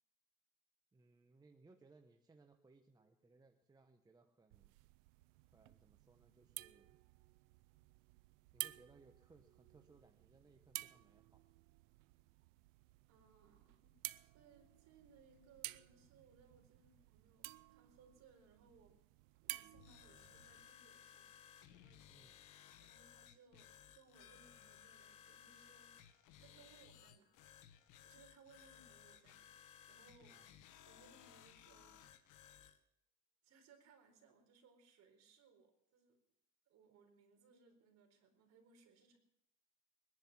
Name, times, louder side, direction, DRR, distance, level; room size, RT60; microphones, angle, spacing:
voice 1, 0.9-4.7 5.5-7.0 8.5-11.4 22.1-22.4 30.2-30.5, right 3 dB, 10° right, 5 dB, 0.9 m, -67 dB
sound 1, 4.5-20.7, right 22 dB, 70° right, 0.6 m, -53 dB
voice 2, 13.0-14.0 14.2-19.0 19.4-21.3 21.7-22.1 22.8-26.0 26.4-27.3 28.0-29.5 29.9-30.4 30.9-32.0 33.4-36.2 36.7-39.2, right 5 dB, 40° right, 4 dB, 4.3 m, -67 dB
sound 2, 19.7-32.8, left 9 dB, 50° left, 1.5 m, -61 dB
sound 3, 24.2-32.8, left 7 dB, 85° left, 3.9 m, -79 dB
21.5 x 11.0 x 6.1 m, 0.79 s
supercardioid pair, 125°, 40 cm